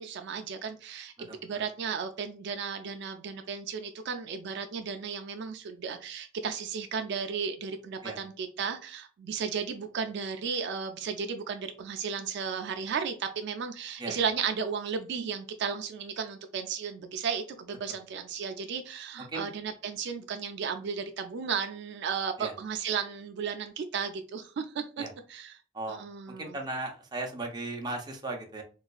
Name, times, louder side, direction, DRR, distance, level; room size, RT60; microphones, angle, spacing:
voice 1, 0.0-25.0 25.3-25.6 25.9-26.6, right 6 dB, 60° right, 6 dB, 0.3 m, -34 dB
voice 2, 19.2-19.5 22.4-22.5 25.0-25.1 25.7-26.0 26.4-28.6, right 2 dB, 20° right, 1 dB, 0.6 m, -36 dB
3.9 x 2.4 x 2.3 m, 0.37 s
head